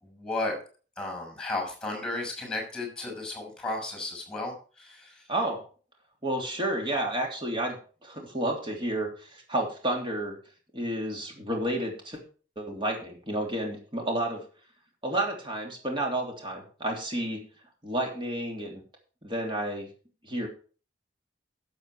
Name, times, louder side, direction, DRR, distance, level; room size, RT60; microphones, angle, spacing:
voice 1, 0.0-0.6 1.0-5.2, left 2 dB, 5° left, 2 dB, 6.0 m, -34 dB
voice 2, 5.3-5.6 6.2-10.3 10.7-12.2 12.6-14.4 15.0-17.4 17.8-18.8 19.2-19.9 20.2-20.5, right 1 dB, 30° right, 0 dB, 3.1 m, -31 dB
11.5 x 7.7 x 4.8 m, 0.39 s
head